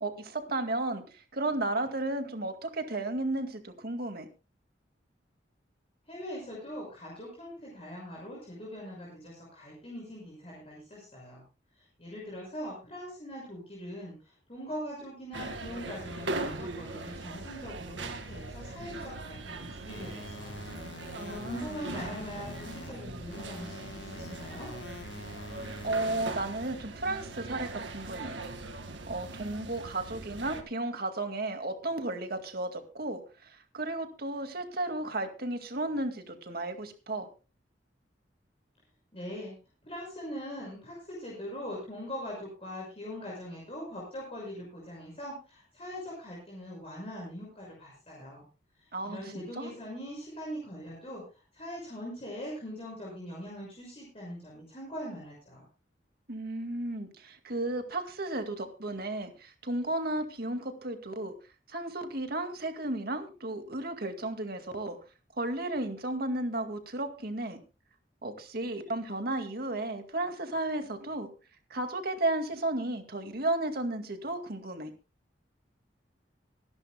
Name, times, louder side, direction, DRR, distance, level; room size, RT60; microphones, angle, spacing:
voice 1, 0.0-4.3 21.1-21.8 25.8-28.4 29.1-37.3 48.9-49.7 56.3-61.3 61.7-65.0 65.4-67.6 68.2-71.3 71.7-74.9, right 2 dB, 55° right, 6 dB, 2.1 m, -34 dB
voice 2, 6.1-11.4 11.8-20.6 21.3-24.7 39.1-39.6 39.8-48.4 48.8-55.6, equal, 35° left, -4 dB, 6.1 m, -42 dB
sound 1, 15.3-30.6, right 2 dB, 85° right, 1.9 m, -40 dB
sound 2, 19.9-22.9 23.3-26.3, left 2 dB, 75° left, 2.1 m, -45 dB
25.5 x 11.0 x 2.2 m, 0.32 s
head